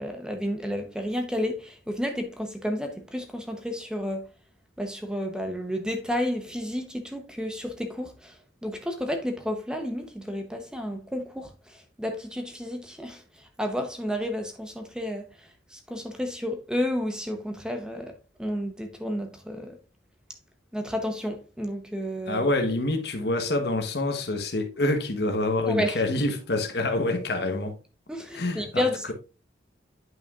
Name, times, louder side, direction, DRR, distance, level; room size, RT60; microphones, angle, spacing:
voice 1, 0.0-4.3 4.8-19.8 20.7-22.5 25.7-26.0 28.1-29.1, equal, 5° right, 0.7 m, -31 dB
voice 2, 22.3-27.7 28.3-29.1, left 2 dB, 60° left, 1.0 m, -26 dB
9.2 x 5.6 x 2.4 m
head